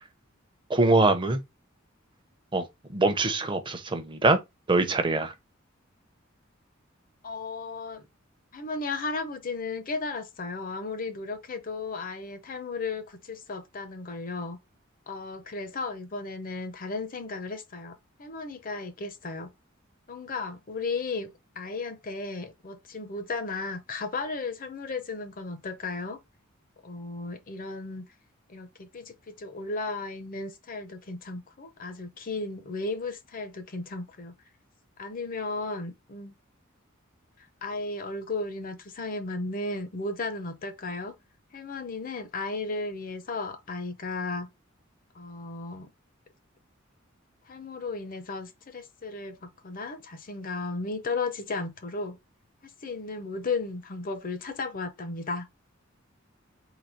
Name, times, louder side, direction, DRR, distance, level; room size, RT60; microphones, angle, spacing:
voice 1, 0.7-1.4 2.5-2.7 2.9-4.4 4.7-5.3, right 2 dB, 25° right, 0.7 m, -23 dB
voice 2, 7.2-8.1 8.5-14.6 15.1-19.5 20.1-26.2 26.8-28.1 28.5-34.3 35.0-36.3 37.6-41.2 41.5-44.5 45.1-45.9 47.5-52.2 52.6-55.5, left 3 dB, 45° left, 0.7 m, -35 dB
4.0 x 2.8 x 4.4 m
head